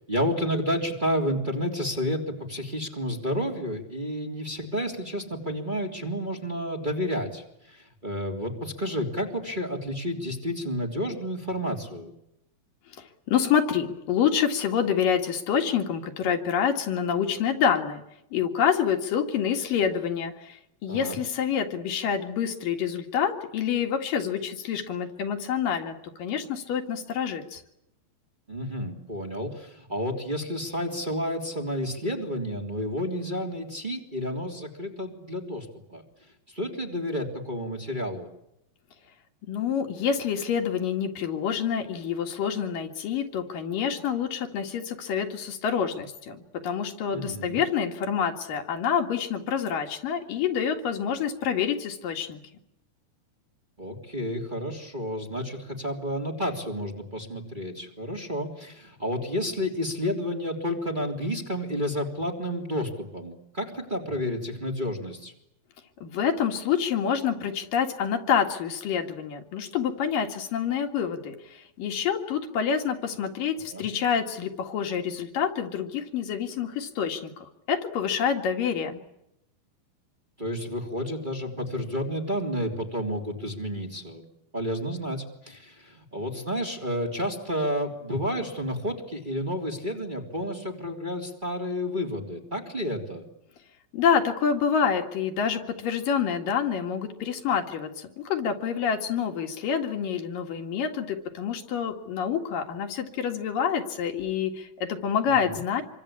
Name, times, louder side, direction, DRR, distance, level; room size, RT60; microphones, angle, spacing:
voice 1, 0.0-12.1 20.9-21.2 28.5-36.0 36.5-38.3 47.1-47.6 53.8-65.3 73.6-73.8 80.4-84.2 84.5-93.2 105.3-105.6, equal, 15° right, 2 dB, 3.0 m, -31 dB
voice 2, 13.3-18.0 18.3-27.6 39.5-52.4 66.0-79.0 93.9-105.8, left 7 dB, 70° left, 5 dB, 3.7 m, -27 dB
27.0 x 24.5 x 8.7 m, 0.82 s
omnidirectional pair, 4.1 m